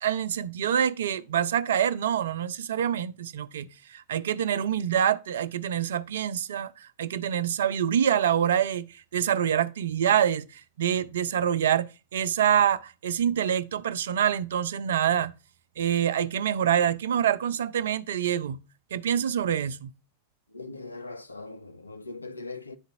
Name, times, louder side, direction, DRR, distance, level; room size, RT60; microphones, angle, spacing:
voice 1, 0.0-15.3 15.8-18.6 18.9-19.9, right 9 dB, 60° right, 0.4 m, -26 dB
voice 2, 20.5-22.8, left 3 dB, 80° left, 0.5 m, -40 dB
10.5 x 3.9 x 2.6 m
figure-of-eight pair, 90°, 0 cm